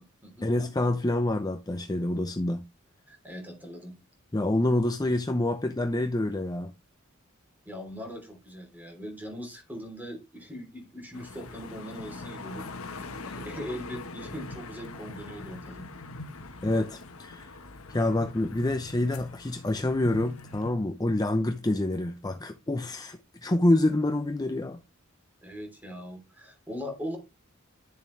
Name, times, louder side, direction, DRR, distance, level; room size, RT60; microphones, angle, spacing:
voice 1, 0.4-2.6 4.3-6.7 16.6-17.5 17.9-24.8, left 1 dB, 20° left, 0.7 m, -27 dB
voice 2, 3.1-3.9 7.6-15.9 25.4-27.2, equal, 10° right, 3.2 m, -40 dB
sound 1, 11.1-20.7, left 3 dB, 90° left, 1.2 m, -42 dB
10.5 x 7.2 x 3.2 m
head